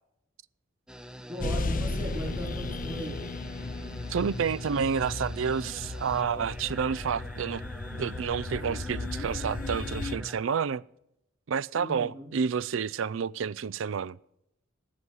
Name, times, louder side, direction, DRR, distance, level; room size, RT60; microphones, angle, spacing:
sound 1, 0.9-10.4, equal, 5° right, 0.6 m, -44 dB
voice 1, 1.3-3.2 11.7-12.3, equal, 20° right, 2.8 m, -37 dB
sound 2, 1.4-10.2, left 3 dB, 45° left, 0.6 m, -35 dB
voice 2, 4.1-7.6 7.9-10.8 11.5-14.2, right 6 dB, 75° right, 0.4 m, -29 dB
16.0 x 9.8 x 6.2 m
head